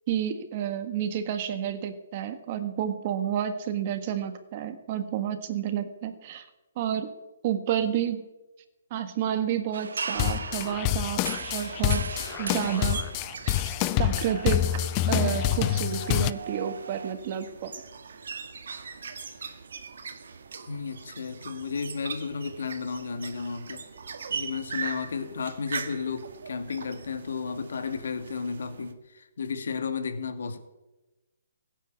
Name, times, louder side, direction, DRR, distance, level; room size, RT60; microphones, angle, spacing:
voice 1, 0.1-6.5 6.8-7.1 7.4-8.2 8.9-11.2 11.5-12.0 12.4-13.0 14.0-17.7, right 9 dB, 30° right, 9 dB, 1.7 m, -30 dB
sound 1, 9.7-17.1, right 5 dB, 85° right, 0.8 m, -38 dB
sound 2, 10.1-16.3, left 14 dB, 25° left, 0.4 m, -27 dB
sound 3, 11.6-28.9, right 5 dB, 70° right, 1.9 m, -41 dB
voice 2, 20.7-23.8 24.3-30.6, left 5 dB, 70° left, 8 dB, 2.3 m, -33 dB
17.0 x 9.3 x 8.3 m, 1.0 s
hypercardioid pair, 165°, 0 cm